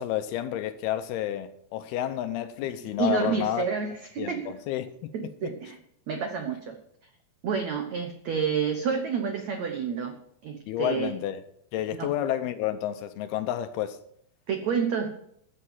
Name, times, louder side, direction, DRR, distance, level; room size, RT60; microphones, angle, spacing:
voice 1, 0.0-3.7 4.2-5.1 5.4-5.5 10.7-11.4 11.7-14.0, left 12 dB, 80° left, 2.4 m, -30 dB
voice 2, 3.0-4.5 5.1-5.8 6.1-6.8 7.4-10.2 10.4-11.1 11.9-12.1 14.5-15.1, right 6 dB, 80° right, 1.6 m, -29 dB
14.5 x 7.7 x 7.3 m
omnidirectional pair, 4.9 m